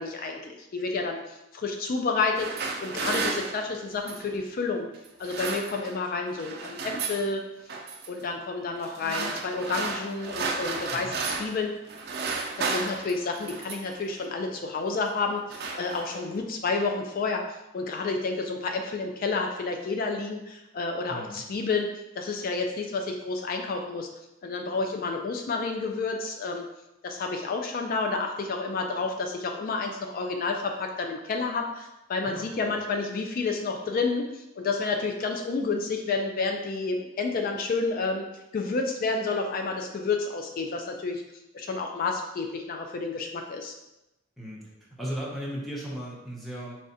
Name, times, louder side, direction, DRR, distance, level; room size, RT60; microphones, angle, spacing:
voice 1, 0.0-4.9 5.2-7.4 8.1-11.7 12.6-24.1 24.4-26.7 27.0-38.3 38.5-41.2 41.5-43.7, left 4 dB, 45° left, 3 dB, 0.4 m, -30 dB
sound 1, 2.2-4.4 5.1-6.1 6.3-7.3 7.7-8.1 8.8-11.6 11.9-14.0 14.8-15.0 15.3-16.4, right 4 dB, 55° right, 0.5 m, -33 dB
voice 2, 21.1-21.4 32.2-32.7 44.4-46.8, equal, ahead, -6 dB, 1.0 m, -37 dB
4.8 x 3.2 x 2.7 m, 0.93 s
head